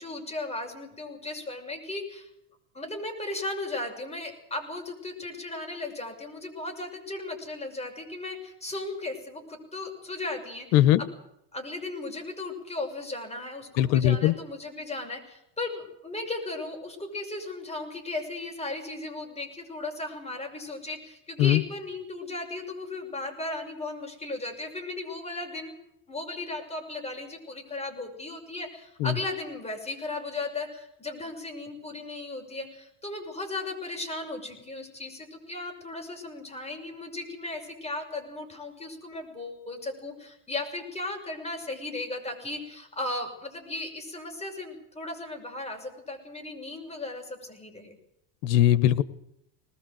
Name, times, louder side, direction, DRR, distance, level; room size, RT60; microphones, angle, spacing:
voice 1, 0.0-2.3 2.7-10.8 11.5-25.7 26.1-48.0, left 2 dB, 10° left, 3 dB, 6.5 m, -36 dB
voice 2, 13.8-14.3 21.4-21.6 29.0-29.2 48.4-49.0, left 12 dB, 75° left, 16 dB, 1.3 m, -20 dB
20.5 x 20.0 x 7.9 m, 0.79 s
supercardioid pair, 115°, 50 cm